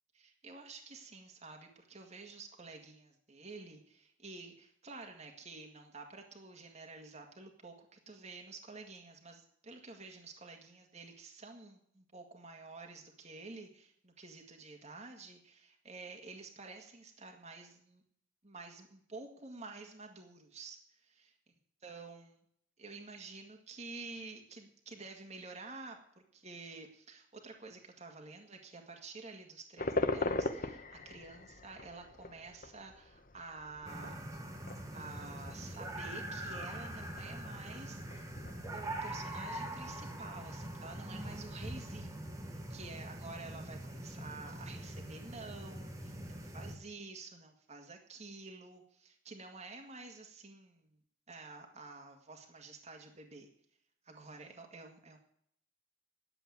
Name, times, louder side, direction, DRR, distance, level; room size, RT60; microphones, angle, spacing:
voice 1, 0.1-18.0 18.4-21.3 21.8-22.4 22.8-34.2 34.9-38.3 38.7-42.2 42.5-46.2 46.5-50.9 51.3-53.5 54.1-55.2, right 3 dB, 35° right, 2 dB, 1.9 m, -50 dB
sound 1, 29.8-39.7, left 2 dB, 45° left, 1.2 m, -41 dB
sound 2, 33.9-46.8, right 1 dB, 15° right, 1.6 m, -43 dB
11.0 x 8.0 x 9.6 m, 0.66 s
head